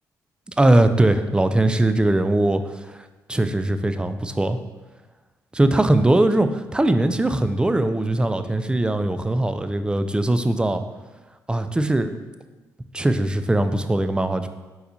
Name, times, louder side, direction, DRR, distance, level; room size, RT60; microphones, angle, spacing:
voice 1, 0.6-3.0 3.3-4.6 5.5-10.8 11.5-12.1 12.9-14.5, right 1 dB, 10° right, 9 dB, 0.3 m, -20 dB
4.1 x 4.0 x 2.7 m, 1.2 s
supercardioid pair, 50°, 8 cm